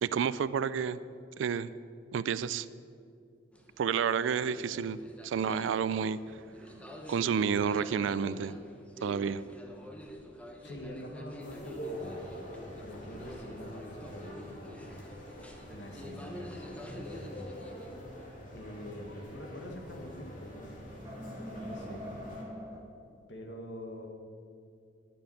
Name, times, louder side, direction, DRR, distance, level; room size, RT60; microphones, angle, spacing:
voice 1, 0.0-1.0 1.4-1.7 2.1-2.7 3.8-5.0 5.2-6.4 7.1-8.6 9.0-9.4, right 7 dB, 80° right, 15 dB, 0.3 m, -30 dB
sound 1, 3.5-17.9, left 1 dB, 5° left, 0.9 m, -48 dB
sound 2, 6.3-9.1 9.6-10.2 10.7-11.7 12.1-12.2 12.7-12.8 15.0-15.1 15.6-16.9 17.2-17.3 19.1-19.5 19.8-20.0 20.4-22.8, equal, 15° right, 1.4 m, -48 dB
voice 2, 10.6-12.3 12.8-15.0 15.7-17.4 18.5-20.8 21.4-22.1 23.3-24.1, equal, 65° left, 1 dB, 1.7 m, -45 dB
sound 3, 11.4-22.4, equal, 45° left, 2.3 m, -45 dB
9.3 x 7.0 x 8.8 m, 2.4 s
head